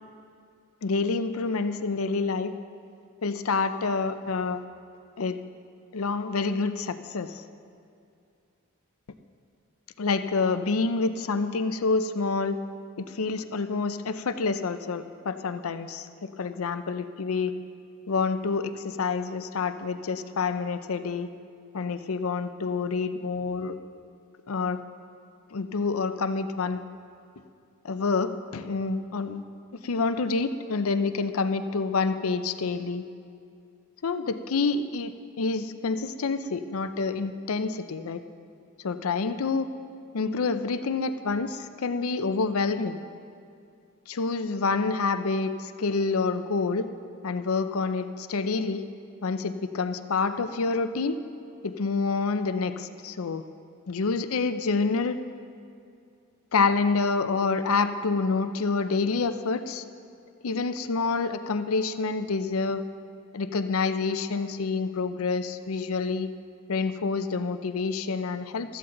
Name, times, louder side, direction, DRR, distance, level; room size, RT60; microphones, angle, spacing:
voice 1, 0.8-2.5 3.2-4.6 5.2-5.4 5.9-7.4 10.0-12.6 13.0-17.6 18.1-21.3 21.7-23.7 24.5-24.8 25.5-26.8 27.8-29.4 29.8-33.0 34.0-35.1 35.4-38.2 38.8-39.7 40.1-43.0 44.1-46.9 47.2-48.8 49.2-51.2 51.6-53.4 53.9-55.2 56.5-59.8 60.4-62.8 63.3-66.3 66.7-68.8, left 4 dB, 85° left, 10 dB, 0.6 m, -27 dB
15.5 x 13.5 x 3.9 m, 2.4 s
head